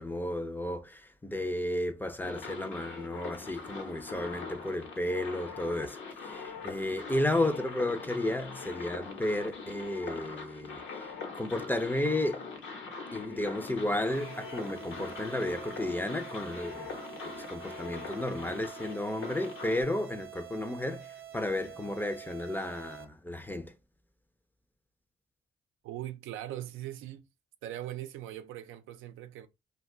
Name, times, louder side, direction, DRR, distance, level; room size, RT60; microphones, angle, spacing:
voice 1, 0.0-10.8 11.3-12.5 13.1-17.0 17.2-23.7, left 1 dB, 10° left, 0.4 m, -33 dB
sound 1, 2.2-19.8, left 4 dB, 75° left, 0.9 m, -42 dB
sound 2, 14.0-23.0, right 10 dB, 50° right, 0.7 m, -48 dB
voice 2, 25.8-27.3 27.6-29.5, right 13 dB, 85° right, 0.4 m, -40 dB
2.3 x 2.2 x 3.6 m
cardioid pair, 90°, 20 cm